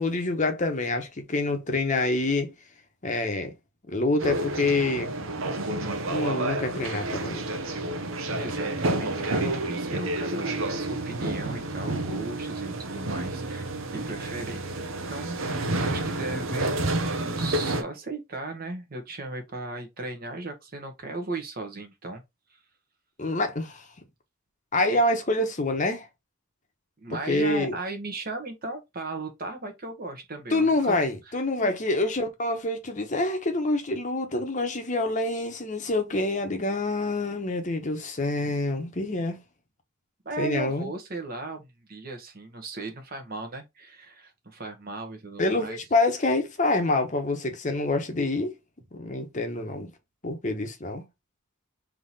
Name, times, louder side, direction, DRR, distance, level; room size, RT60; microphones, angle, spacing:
voice 1, 0.0-2.5 3.0-3.5 3.9-5.1 6.1-7.4 23.2-23.9 24.7-26.1 27.3-27.7 30.5-39.4 40.4-40.9 45.4-48.5 48.9-49.9 50.2-51.0, left 2 dB, 35° left, 1.0 m, -26 dB
sound 1, 4.2-17.8, right 2 dB, 70° right, 0.8 m, -30 dB
voice 2, 8.3-22.2 22.5-22.6 27.0-31.0 31.6-31.7 40.2-45.8, right 2 dB, 45° right, 1.2 m, -36 dB
3.7 x 3.0 x 4.0 m
head